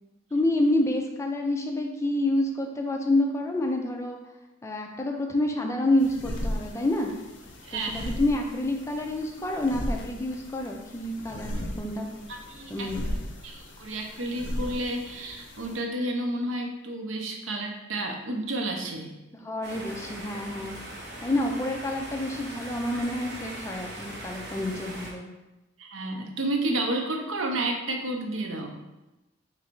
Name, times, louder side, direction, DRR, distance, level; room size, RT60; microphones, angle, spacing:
voice 1, 0.3-4.2 4.6-7.1 7.7-12.2 12.7-13.0 19.4-20.8 21.2-25.3, left 1 dB, 15° left, 1 dB, 0.4 m, -28 dB
sound 1, 6.0-15.8, left 1 dB, 65° left, 0.6 m, -37 dB
voice 2, 7.6-8.2 12.5-12.9 13.4-19.1 25.8-28.8, right 1 dB, 85° right, 2 dB, 0.6 m, -31 dB
sound 2, 19.6-25.1, right 1 dB, 60° right, 0.9 m, -40 dB
3.1 x 2.5 x 4.4 m, 1.0 s
head